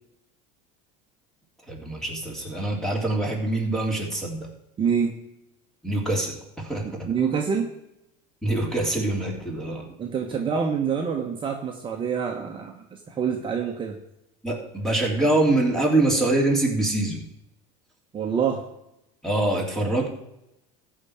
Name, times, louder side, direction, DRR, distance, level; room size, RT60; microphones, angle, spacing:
voice 1, 1.7-4.5 5.8-7.1 8.4-9.8 14.4-17.2 19.2-20.1, right 2 dB, 5° left, 0 dB, 3.3 m, -24 dB
voice 2, 4.8-5.1 6.8-7.7 10.0-14.0 18.1-18.7, right 6 dB, 30° right, 1 dB, 1.4 m, -26 dB
14.0 x 5.0 x 8.7 m, 0.86 s
supercardioid pair, 120°, 18 cm